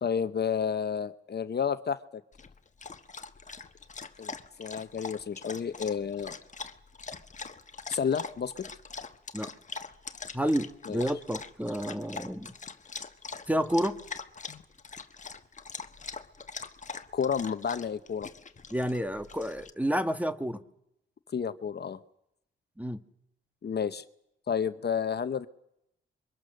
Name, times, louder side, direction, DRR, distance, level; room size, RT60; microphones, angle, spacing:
voice 1, 0.0-2.2 4.2-6.4 7.9-8.5 10.9-11.0 14.5-14.6 17.1-18.3 21.3-22.0 23.6-24.0 24.5-25.5, left 7 dB, 50° left, 11 dB, 1.0 m, -31 dB
Dog, 2.3-19.7, left 4 dB, 35° left, 1.4 m, -43 dB
voice 2, 10.3-12.5 13.5-14.0 18.7-20.6 22.8-23.0, equal, 5° right, 10 dB, 1.6 m, -30 dB
27.0 x 23.5 x 6.6 m, 0.80 s
cardioid pair, 70°, 21 cm